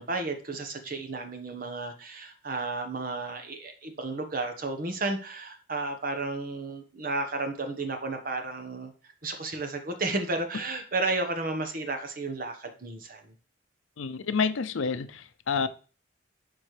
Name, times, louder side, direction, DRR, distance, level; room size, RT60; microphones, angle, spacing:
voice 1, 0.0-8.9 9.2-13.3, right 3 dB, 45° right, 1.2 m, -32 dB
voice 2, 14.0-15.7, left 5 dB, 85° left, 0.6 m, -29 dB
12.0 x 4.3 x 3.3 m
head